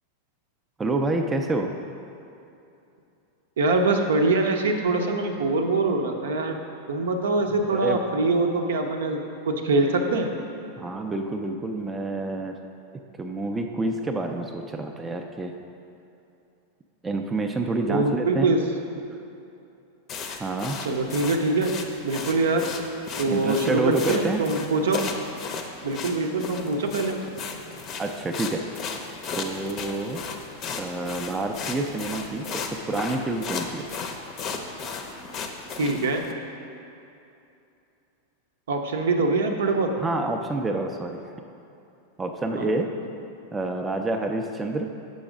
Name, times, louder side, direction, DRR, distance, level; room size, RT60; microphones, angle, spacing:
voice 1, 0.8-1.7 7.7-8.0 10.8-12.6 13.2-15.5 17.0-18.5 20.4-20.8 23.3-24.4 28.0-28.7 29.3-30.2 30.8-33.9 40.0-41.2 42.2-42.9 43.5-44.9, right 2 dB, 15° right, 3 dB, 0.4 m, -28 dB
voice 2, 3.6-6.6 6.9-9.2 9.5-10.3 17.9-18.6 20.8-21.7 22.0-22.7 23.2-25.0 25.8-27.2 35.8-36.2 38.7-39.9 42.6-42.7, right 3 dB, 60° right, 4 dB, 0.6 m, -23 dB
sound 1, 20.1-36.3, left 5 dB, 30° left, 0.6 m, -35 dB
6.9 x 5.2 x 5.0 m, 2.7 s
figure-of-eight pair, 90°, 0 cm